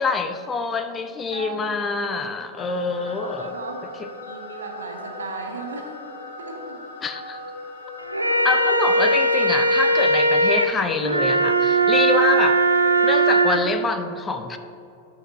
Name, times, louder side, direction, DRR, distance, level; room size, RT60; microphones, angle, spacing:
voice 1, 0.0-3.5 4.0-4.1 7.0-7.4 8.4-12.6 13.0-14.6, left 4 dB, 20° left, 8 dB, 0.4 m, -26 dB
voice 2, 1.3-1.8 3.1-3.8 4.2-5.9 6.4-6.8, right 4 dB, 70° right, 3 dB, 0.9 m, -36 dB
sound 1, 2.6-9.8, left 2 dB, 55° left, 0.7 m, -38 dB
sound 2, 8.0-13.6, right 2 dB, 85° right, 0.5 m, -19 dB
12.0 x 4.4 x 2.5 m, 2.9 s
figure-of-eight pair, 90°, 0 cm